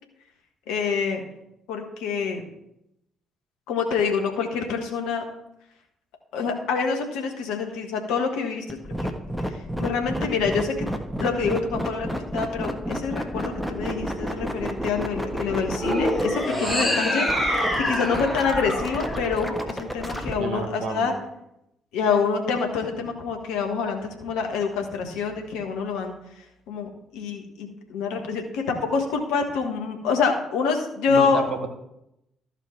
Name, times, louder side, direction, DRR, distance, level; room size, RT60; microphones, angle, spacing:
voice 1, 0.7-1.2 1.7-2.4 3.7-5.2 6.3-9.1 9.5-10.7 11.2-12.1 12.3-21.1 21.9-26.1 26.7-31.4, left 5 dB, 65° left, 3 dB, 1.5 m, -26 dB
sound 1, 8.7-20.3, equal, ahead, 1.4 m, -30 dB
sound 2, 15.7-20.1, left 1 dB, 20° left, 3.1 m, -26 dB
voice 2, 16.5-16.8 20.4-21.1 31.1-31.7, right 5 dB, 60° right, 5 dB, 1.5 m, -30 dB
13.5 x 4.9 x 4.6 m, 0.83 s
figure-of-eight pair, 45°, 0 cm